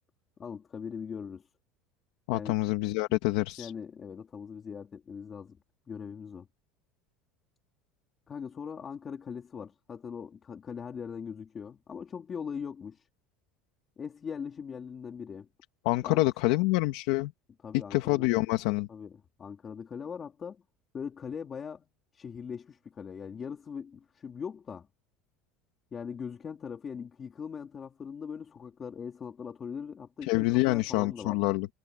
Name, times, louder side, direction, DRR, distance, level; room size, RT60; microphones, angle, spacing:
voice 1, 0.4-1.5 2.3-2.6 3.6-5.6 5.9-6.5 8.3-13.1 14.0-15.5 16.0-16.2 17.6-18.3 18.9-20.6 20.9-21.9 22.1-24.9 25.9-31.4, left 6 dB, 25° left, 3.9 m, -40 dB
voice 2, 2.3-3.7 15.8-17.3 17.9-18.9 30.2-31.7, left 20 dB, 75° left, 1.9 m, -27 dB
cardioid pair, 160°, 0 cm